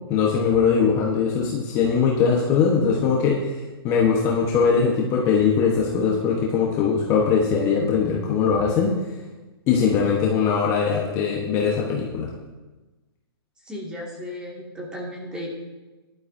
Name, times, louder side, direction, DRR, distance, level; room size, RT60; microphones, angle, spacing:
voice 1, 0.1-3.6 3.8-8.9 9.7-12.3, left 6 dB, 20° left, -2 dB, 1.2 m, -21 dB
voice 2, 13.7-15.5, left 1 dB, 5° right, -2 dB, 2.1 m, -35 dB
16.0 x 11.5 x 2.7 m, 1.2 s
hypercardioid pair, 160°, 13 cm